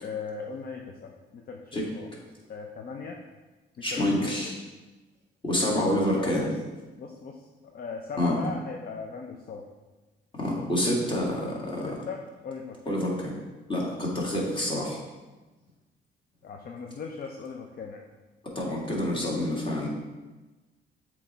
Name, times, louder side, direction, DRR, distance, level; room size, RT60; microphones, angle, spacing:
voice 1, 0.0-2.1 2.5-3.2 3.8-4.6 6.2-6.5 7.0-9.7 11.8-13.0 16.4-18.0, left 5 dB, 50° left, 2 dB, 0.6 m, -39 dB
voice 2, 3.8-4.5 5.4-6.5 8.2-8.4 10.3-11.9 12.9-13.3 13.7-15.0 18.6-19.9, left 1 dB, 25° left, -4 dB, 2.0 m, -27 dB
7.3 x 3.2 x 4.4 m, 1.2 s
cardioid pair, 90°, 20 cm